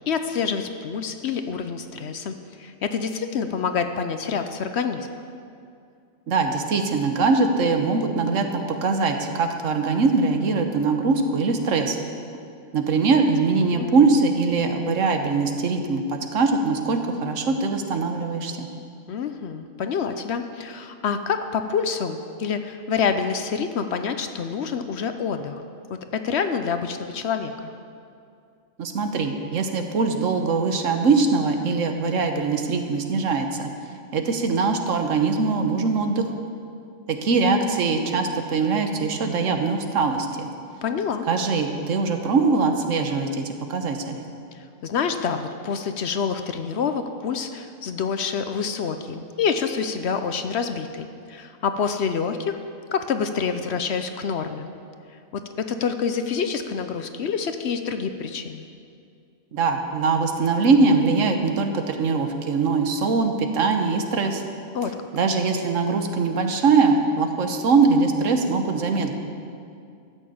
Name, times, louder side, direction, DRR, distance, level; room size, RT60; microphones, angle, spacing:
voice 1, 0.1-5.1 13.7-13.9 19.1-25.6 25.9-27.7 40.8-41.3 44.5-52.6 52.9-54.7 55.3-58.7 64.7-65.0, left 6 dB, 60° left, 8 dB, 0.9 m, -27 dB
voice 2, 6.3-12.0 12.7-18.7 28.8-33.7 34.1-36.3 37.1-40.5 41.3-44.3 59.5-64.4 65.1-69.1, right 4 dB, 70° right, 5 dB, 1.3 m, -22 dB
13.5 x 6.5 x 8.5 m, 2.4 s
omnidirectional pair, 1.4 m